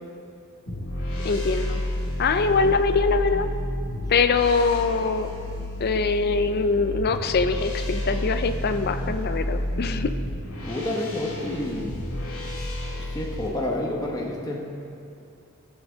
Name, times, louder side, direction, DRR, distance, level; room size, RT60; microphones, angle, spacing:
sound 1, 0.7-13.5, left 1 dB, 70° left, 2.2 m, -30 dB
voice 1, 1.2-1.8 2.2-3.5 4.1-5.3 5.8-10.1, left 4 dB, 45° left, 9 dB, 0.5 m, -23 dB
voice 2, 10.6-12.0 13.1-14.6, left 1 dB, 15° left, -2 dB, 1.0 m, -29 dB
15.0 x 7.2 x 3.9 m, 2.6 s
head